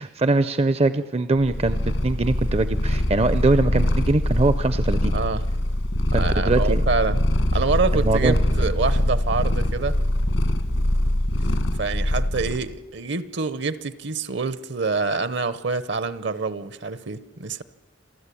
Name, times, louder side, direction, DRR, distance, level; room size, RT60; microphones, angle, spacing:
voice 1, 0.0-5.1 6.1-6.8 7.9-8.4, right 2 dB, 30° right, 13 dB, 0.6 m, -22 dB
Purr, 1.4-12.7, left 1 dB, 80° left, 1.8 m, -23 dB
voice 2, 5.1-5.4 6.1-7.2 7.5-10.0 11.8-17.6, right 4 dB, 60° right, 15 dB, 0.9 m, -26 dB
28.5 x 12.0 x 8.5 m, 1.2 s
head